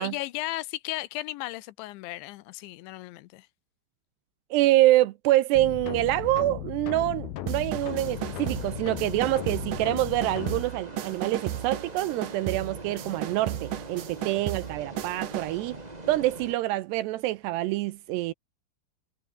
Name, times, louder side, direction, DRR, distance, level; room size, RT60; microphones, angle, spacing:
voice 1, 0.0-3.5, left 18 dB, 80° left, 3.1 m, -35 dB
voice 2, 4.5-15.8 16.1-18.3, right 16 dB, 80° right, 2.6 m, -26 dB
sound 1, 5.5-10.6, left 13 dB, 65° left, 2.8 m, -36 dB
sound 2, 7.5-15.6, right 12 dB, 60° right, 2.3 m, -35 dB
sound 3, 7.8-16.5, right 2 dB, 15° right, 1.7 m, -42 dB
omnidirectional pair, 5.3 m